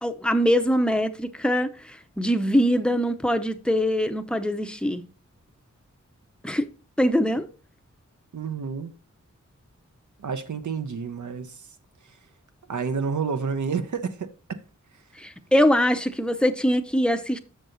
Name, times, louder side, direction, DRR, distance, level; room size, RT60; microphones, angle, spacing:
voice 1, 0.0-5.0 6.4-6.7 7.0-7.5 15.2-17.4, equal, 5° left, 0.7 m, -23 dB
voice 2, 8.3-8.9 10.2-11.7 12.0-12.2 12.7-14.6 14.9-15.0, right 5 dB, 70° right, 0.9 m, -30 dB
6.5 x 6.3 x 3.9 m
wide cardioid pair, 75°, 31 cm